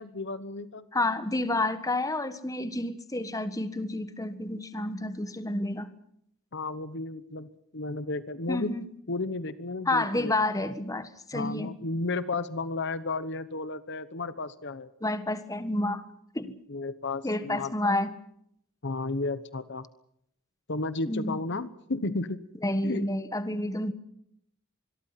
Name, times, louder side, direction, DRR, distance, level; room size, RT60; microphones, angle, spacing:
voice 1, 0.0-0.9 6.5-8.7 9.1-10.3 11.3-14.9 16.7-17.9 18.8-19.9 20.7-22.4 22.8-23.1, left 3 dB, 55° left, 14 dB, 1.1 m, -33 dB
voice 2, 0.9-5.9 8.5-8.8 9.9-11.7 15.0-16.0 16.3-16.5 17.2-18.1 21.1-21.4 22.6-23.9, left 2 dB, 15° left, 11 dB, 1.5 m, -29 dB
25.5 x 22.0 x 5.9 m, 0.72 s
head